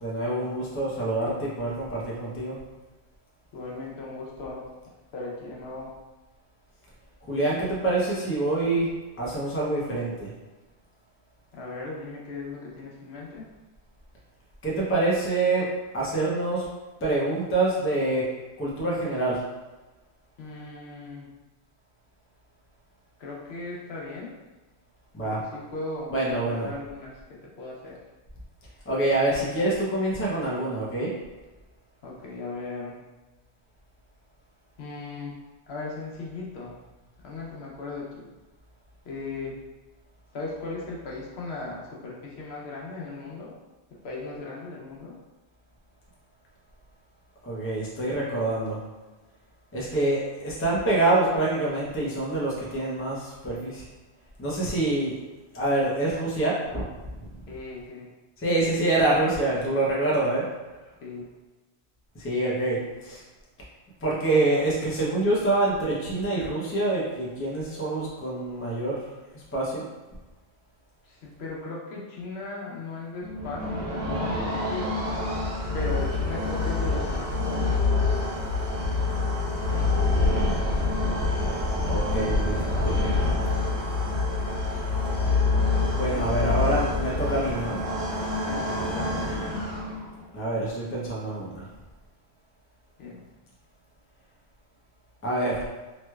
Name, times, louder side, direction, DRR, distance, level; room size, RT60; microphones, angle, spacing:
voice 1, 0.0-2.6 7.3-8.9 9.2-10.3 14.6-15.7 15.9-16.6 17.0-18.2 18.6-19.4 25.1-25.4 26.1-26.7 28.9-31.1 47.4-48.8 49.7-53.8 54.4-55.2 55.5-56.8 58.4-60.4 62.2-63.2 64.0-69.1 69.3-69.9 81.8-82.6 85.9-87.8 90.3-91.7 95.2-95.6, right 2 dB, 15° left, -5 dB, 0.5 m, -26 dB
voice 2, 3.5-4.7 5.1-5.9 11.5-13.5 20.4-21.3 23.2-24.4 25.2-28.0 32.0-33.1 34.8-35.3 35.7-36.8 37.2-38.3 39.0-39.6 40.3-43.5 44.0-45.2 57.5-58.1 61.0-61.3 71.0-75.0 75.7-78.1 79.7-80.2 82.5-83.5 86.1-86.7 88.5-89.3 93.0-93.2, left 3 dB, 75° left, -3 dB, 0.9 m, -37 dB
sound 1, 73.2-90.2, left 3 dB, 90° right, 1.2 m, -26 dB
3.0 x 3.0 x 2.2 m, 1.2 s
omnidirectional pair, 1.1 m